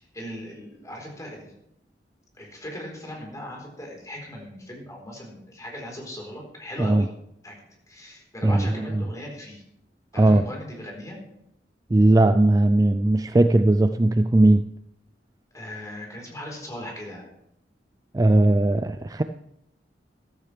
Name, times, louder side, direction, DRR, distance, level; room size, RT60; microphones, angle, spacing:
voice 1, 0.0-1.5 2.3-7.1 7.4-7.6 7.9-9.6 10.1-11.2 15.5-17.3, left 1 dB, 20° left, -1 dB, 4.0 m, -38 dB
voice 2, 8.4-9.0 10.2-10.4 11.9-14.6 18.1-19.2, right 2 dB, 20° right, 9 dB, 0.4 m, -18 dB
14.5 x 13.5 x 3.3 m, 0.79 s
head